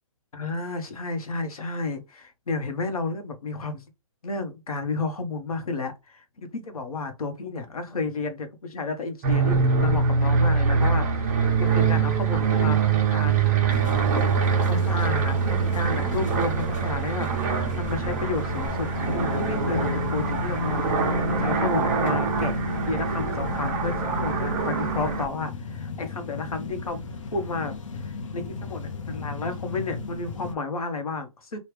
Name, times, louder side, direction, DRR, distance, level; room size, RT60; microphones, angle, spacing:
voice 1, 0.3-3.8 4.2-13.8 14.1-14.2 14.5-22.6 22.9-27.0 27.3-31.6, left 3 dB, 90° left, 1.1 m, -32 dB
sound 1, 9.2-25.3, right 5 dB, 25° right, 0.8 m, -24 dB
sound 2, 13.7-30.5, left 4 dB, 60° left, 0.7 m, -36 dB
3.2 x 2.4 x 3.2 m
hypercardioid pair, 165°, 18 cm